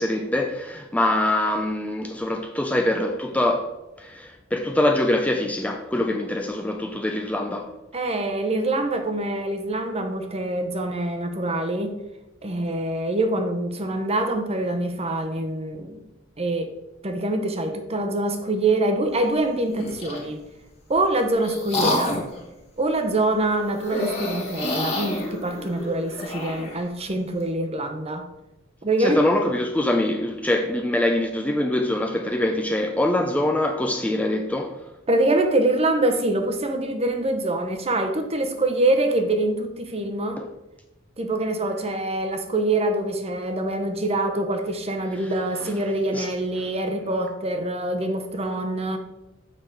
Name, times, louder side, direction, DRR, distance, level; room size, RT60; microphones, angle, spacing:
voice 1, 0.0-3.7 4.0-7.7 29.0-34.8 40.4-40.5 45.6-45.7 46.1-46.3, left 1 dB, 5° left, 0.4 m, -24 dB
voice 2, 7.9-12.0 12.4-16.0 16.4-16.7 17.0-20.4 20.9-22.2 22.8-28.2 28.8-29.2 35.1-40.4 41.2-49.0, right 2 dB, 30° right, 0.9 m, -25 dB
sound 1, 19.7-20.3 20.9-22.4 23.8-26.8, left 1 dB, 30° left, 1.7 m, -29 dB
6.7 x 5.9 x 4.7 m
head